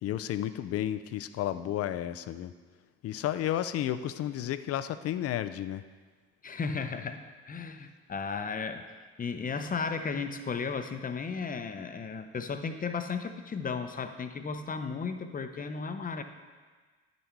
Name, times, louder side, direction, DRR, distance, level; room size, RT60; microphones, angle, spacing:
voice 1, 0.0-2.5 3.0-5.8, left 12 dB, 55° left, 12 dB, 0.5 m, -32 dB
voice 2, 6.4-16.2, left 5 dB, 30° left, 8 dB, 0.8 m, -35 dB
9.9 x 6.7 x 4.6 m, 1.4 s
supercardioid pair, 75°, 29 cm